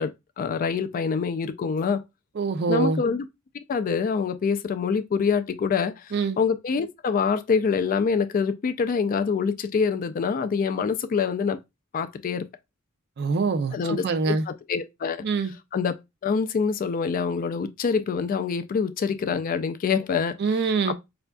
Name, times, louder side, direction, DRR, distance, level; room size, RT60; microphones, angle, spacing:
voice 1, 0.0-2.0 2.7-3.3 3.5-11.6 11.9-12.5 13.7-15.3 15.7-15.9 16.2-20.4 20.9-21.0, left 5 dB, 40° left, 0.3 m, -25 dB
voice 2, 2.4-3.0 6.1-6.4 13.2-14.4 15.2-15.5 20.4-20.9, right 4 dB, 50° right, 0.4 m, -24 dB
4.4 x 2.5 x 2.2 m
head